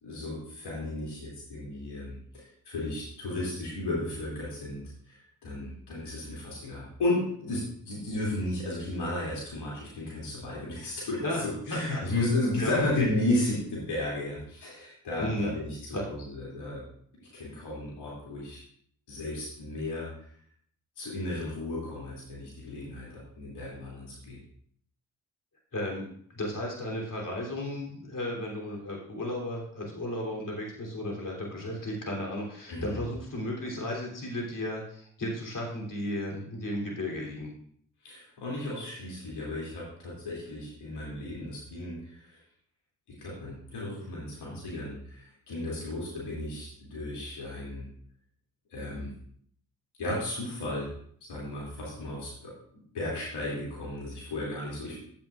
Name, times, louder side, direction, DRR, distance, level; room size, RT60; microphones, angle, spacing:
voice 1, 0.0-16.8 17.2-18.6 19.1-20.1 21.0-24.4 32.7-33.0 38.0-42.4 43.2-47.8 48.7-49.1 50.0-50.9 51.3-52.5 52.9-55.0, left 1 dB, 75° left, -5 dB, 2.8 m, -34 dB
voice 2, 11.7-12.0 12.6-13.1 15.2-15.5 15.9-16.0 25.7-26.1 26.3-37.5, left 1 dB, 50° left, -1 dB, 3.3 m, -34 dB
12.0 x 7.8 x 2.5 m, 0.62 s
hypercardioid pair, 40°, 40 cm